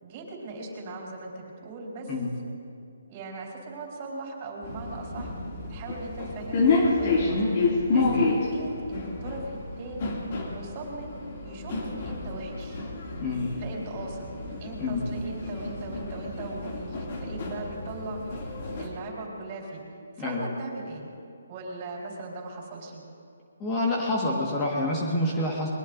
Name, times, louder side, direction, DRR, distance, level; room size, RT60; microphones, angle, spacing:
voice 1, 0.0-2.1 2.5-2.6 3.1-5.3 5.7-7.5 7.9-10.1 10.5-11.1 11.4-12.9 13.6-14.3 14.6-19.8 20.2-21.1 21.5-23.0, right 2 dB, 30° right, -2 dB, 4.0 m, -39 dB
sound 1, 4.6-18.9, left 3 dB, 40° left, 2.5 m, -29 dB
voice 2, 13.2-13.5 14.8-15.1 20.2-20.5 23.6-25.7, left 2 dB, 20° left, -2 dB, 1.6 m, -27 dB
22.5 x 20.5 x 2.6 m, 2.4 s
hypercardioid pair, 155°, 0 cm